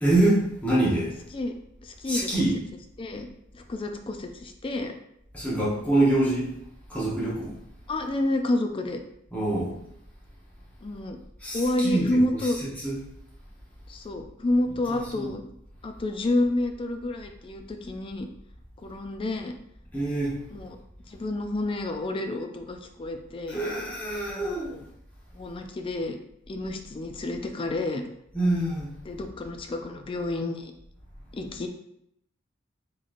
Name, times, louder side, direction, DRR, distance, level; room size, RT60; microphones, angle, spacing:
voice 1, 0.0-1.1 2.0-2.5 5.3-6.5 6.9-7.5 9.3-9.7 11.4-12.1 12.8-12.9 14.9-15.3 19.9-20.4 23.5-24.7 28.3-28.9, right 1 dB, 5° left, -8 dB, 1.1 m, -25 dB
voice 2, 1.8-2.5 3.0-3.3 3.5-4.9 7.9-9.0 10.8-11.2 11.5-12.6 13.9-15.4 15.8-18.3 18.8-19.5 20.5-20.8 21.1-23.6 24.7-24.8 25.3-26.2 26.5-28.0 29.1-30.7 31.3-31.7, left 1 dB, 25° left, 5 dB, 0.3 m, -29 dB
4.0 x 3.1 x 2.5 m, 0.77 s
head